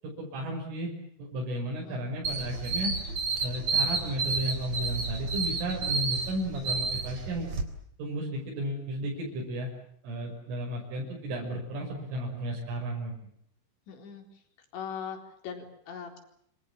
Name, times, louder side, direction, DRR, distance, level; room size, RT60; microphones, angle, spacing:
voice 1, 0.0-0.9 1.2-2.9 3.4-7.5 8.0-9.7 10.0-13.1, right 1 dB, 85° right, -1 dB, 8.6 m, -34 dB
sound 1, 2.2-7.6, right 4 dB, 35° right, 4.4 m, -31 dB
voice 2, 13.9-14.2 14.7-16.2, left 7 dB, 65° left, 5 dB, 6.3 m, -40 dB
28.5 x 26.0 x 7.4 m, 0.69 s
omnidirectional pair, 5.6 m